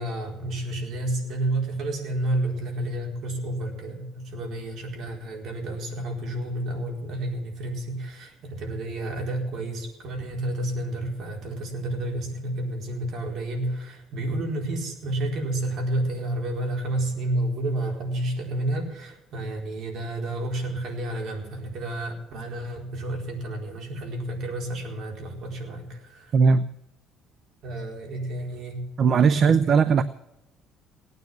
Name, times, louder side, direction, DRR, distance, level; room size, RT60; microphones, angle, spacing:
voice 1, 0.0-26.3 27.6-28.8 29.3-29.5, right 1 dB, 55° right, 1 dB, 4.4 m, -30 dB
voice 2, 26.3-26.7 29.0-30.0, right 5 dB, 40° right, 14 dB, 0.5 m, -18 dB
18.0 x 9.5 x 7.6 m, 0.90 s
cardioid pair, 155°, 0 cm